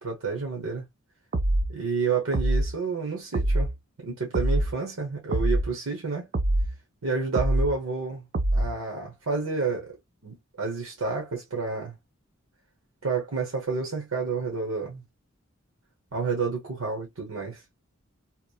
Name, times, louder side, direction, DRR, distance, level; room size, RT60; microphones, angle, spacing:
voice 1, 0.0-0.8 1.7-3.7 4.0-6.3 7.0-8.2 8.5-10.0 10.2-11.9 13.0-15.0 16.1-17.6, right 4 dB, 80° right, 0.9 m, -30 dB
sound 1, 1.3-1.7 2.3-2.7 3.3-3.7 4.3-4.7 5.3-5.7 6.3-6.7 7.3-7.7 8.3-8.7, right 1 dB, 40° right, 0.5 m, -24 dB
2.9 x 2.1 x 2.3 m
head